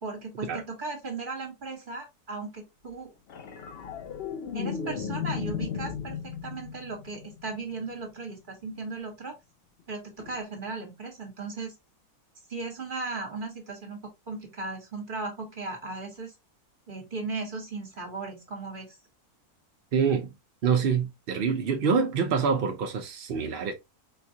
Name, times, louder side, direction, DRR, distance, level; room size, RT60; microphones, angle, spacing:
voice 1, 0.0-3.1 4.5-9.4 9.9-11.7 12.5-14.0 14.3-16.3 16.9-19.0, right 3 dB, 35° right, 1.3 m, -37 dB
sound 1, 3.3-7.8 10.2-10.4, left 7 dB, 65° left, 0.6 m, -35 dB
voice 2, 19.9-20.3 20.6-23.7, right 6 dB, 60° right, 0.6 m, -26 dB
4.3 x 2.3 x 2.7 m
omnidirectional pair, 1.6 m